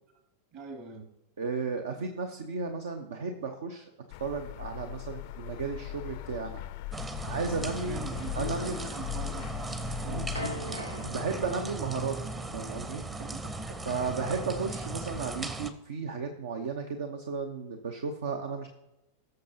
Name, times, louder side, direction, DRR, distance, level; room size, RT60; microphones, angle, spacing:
voice 1, 0.5-1.1 7.6-9.5 10.0-10.4 13.1-13.5, right 2 dB, 45° right, 4 dB, 2.3 m, -43 dB
voice 2, 1.4-3.9 4.2-6.6 7.2-8.8 10.0-10.3 11.1-13.0 13.9-18.7, right 4 dB, 60° right, 5 dB, 0.9 m, -34 dB
sound 1, 4.1-10.4, left 13 dB, 50° left, 0.5 m, -39 dB
sound 2, 6.9-15.7, right 3 dB, 15° right, 0.8 m, -37 dB
sound 3, 10.3-15.8, left 2 dB, 85° right, 1.2 m, -43 dB
18.5 x 6.7 x 2.8 m, 0.92 s
figure-of-eight pair, 90°, 0 cm